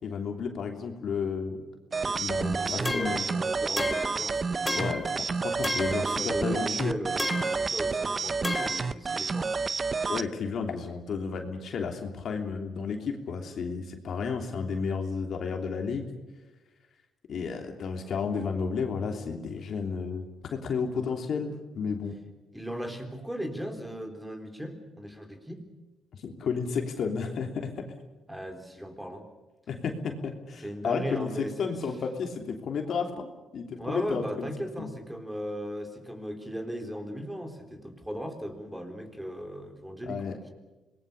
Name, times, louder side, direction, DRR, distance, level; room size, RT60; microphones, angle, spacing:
voice 1, 0.0-1.6 2.0-3.2 4.7-5.1 5.4-6.9 10.1-16.1 17.3-20.2 20.5-22.2 26.1-27.9 29.7-34.5 34.8-35.0 40.0-40.4, left 5 dB, 60° left, 4 dB, 3.1 m, -32 dB
sound 1, 1.9-10.2, right 4 dB, 35° right, 0.7 m, -30 dB
voice 2, 2.4-5.0 5.7-9.5 22.5-25.7 28.3-29.3 30.6-31.8 33.8-40.2, equal, 5° right, 5 dB, 3.8 m, -37 dB
sound 2, 2.9-3.3 3.8-4.2 4.7-5.1 5.6-6.1 7.2-7.6 8.4-8.9, left 2 dB, 15° left, 2.2 m, -32 dB
26.5 x 20.0 x 6.9 m, 1.2 s
cardioid pair, 90°, 0 cm